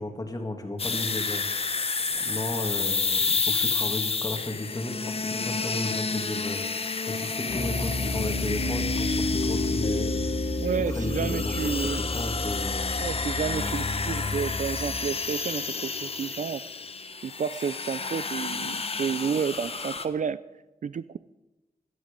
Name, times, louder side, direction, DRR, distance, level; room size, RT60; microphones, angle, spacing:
voice 1, 0.0-1.4 2.2-10.2 10.9-13.0, left 1 dB, 25° left, 4 dB, 2.0 m, -34 dB
sound 1, 0.8-20.1, left 4 dB, 40° left, 0.9 m, -30 dB
Piano, 7.5-15.0, left 2 dB, 65° left, 2.4 m, -30 dB
voice 2, 10.6-12.0 13.0-16.6 17.2-20.4 20.8-21.2, right 7 dB, 55° right, 16 dB, 0.4 m, -30 dB
17.0 x 12.5 x 5.1 m, 1.0 s
wide cardioid pair, 140°, 15 cm